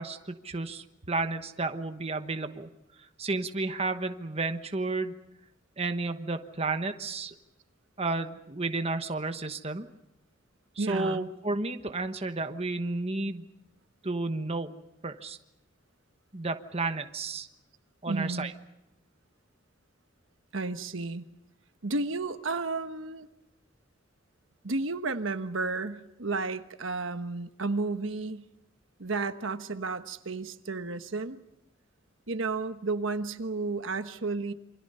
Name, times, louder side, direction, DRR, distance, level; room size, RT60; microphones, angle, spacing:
voice 1, 0.0-2.7 3.2-5.1 5.8-7.3 8.0-9.9 10.8-13.4 14.0-14.7 15.0-15.4 16.3-17.5 18.0-18.5, right 3 dB, 30° right, 7 dB, 1.1 m, -32 dB
voice 2, 10.8-11.3 18.1-18.5 20.5-21.2 21.8-23.3 24.6-28.4 29.0-31.4 32.3-34.5, right 3 dB, 75° right, 9 dB, 1.2 m, -32 dB
28.0 x 25.5 x 5.6 m, 0.87 s
head